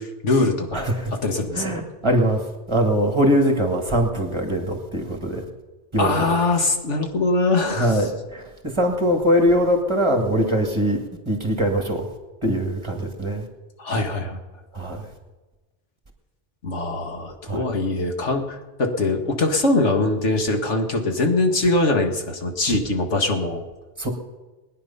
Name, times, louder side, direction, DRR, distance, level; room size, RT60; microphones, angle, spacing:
voice 1, 0.0-0.9 1.2-1.8 6.0-8.1 13.8-14.4 16.6-23.6, left 2 dB, 85° left, 3 dB, 2.1 m, -22 dB
voice 2, 0.7-1.1 1.5-2.4 2.7-5.4 5.9-6.3 7.8-8.1 8.8-11.0 11.3-12.1 12.4-13.4 14.8-15.0 17.5-17.6 24.0-24.1, equal, 25° right, 3 dB, 2.0 m, -21 dB
21.0 x 9.9 x 5.6 m, 1.2 s
omnidirectional pair, 1.2 m